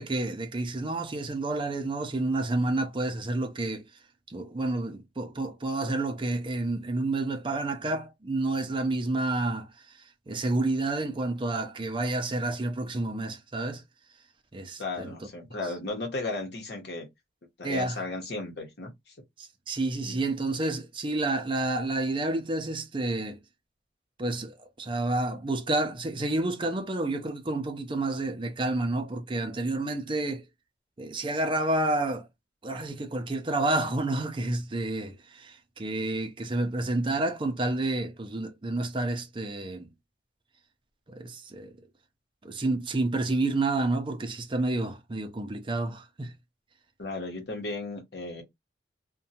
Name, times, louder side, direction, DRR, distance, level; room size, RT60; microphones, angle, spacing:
voice 1, 0.0-3.9 4.3-9.7 10.3-13.8 14.5-15.1 17.6-18.0 19.4-23.4 24.2-30.4 31.0-32.3 32.6-39.9 41.1-41.8 42.4-46.3, right 2 dB, 30° right, 0.5 m, -29 dB
voice 2, 14.8-17.1 17.6-18.9 20.1-20.2 47.0-48.4, left 3 dB, 65° left, 0.9 m, -35 dB
2.7 x 2.2 x 2.7 m
head